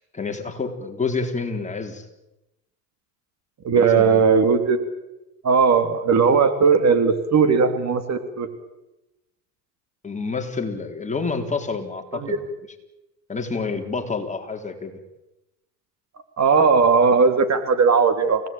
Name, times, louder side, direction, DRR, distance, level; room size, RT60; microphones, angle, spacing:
voice 1, 0.1-2.1 3.8-4.3 10.0-12.4 13.3-14.9, left 4 dB, 15° left, 4 dB, 4.1 m, -28 dB
voice 2, 3.6-4.8 5.4-8.5 12.2-12.4 16.4-18.4, right 5 dB, 35° right, 9 dB, 2.7 m, -18 dB
29.0 x 18.0 x 9.0 m, 0.96 s
supercardioid pair, 100°, 48 cm